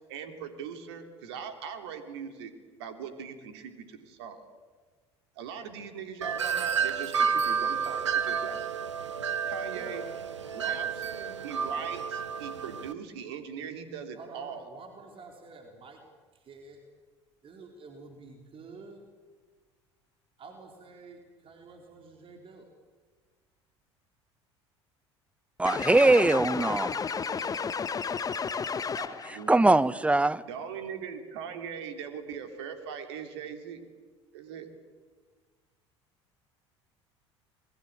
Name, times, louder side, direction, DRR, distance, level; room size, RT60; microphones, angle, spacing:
voice 1, 0.1-2.5 2.8-4.4 5.4-8.6 9.4-10.0 10.5-10.9 11.4-14.7 29.3-29.9 30.5-33.8 34.3-34.7, right 7 dB, 65° right, 7 dB, 3.0 m, -40 dB
Wind chime, 6.2-12.9, right 6 dB, 80° right, 1.2 m, -30 dB
voice 2, 9.7-10.1 10.6-11.4 14.2-16.0 16.4-16.8 17.4-19.0 20.4-22.7 27.3-27.7 28.9-29.3, right 4 dB, 35° right, 3 dB, 4.0 m, -48 dB
sound 1, 25.6-29.4, left 6 dB, 25° left, 1.1 m, -32 dB
voice 3, 25.6-27.0 29.5-30.4, right 2 dB, 10° right, 18 dB, 0.9 m, -22 dB
27.0 x 21.5 x 8.7 m, 1.4 s
figure-of-eight pair, 65°, 15 cm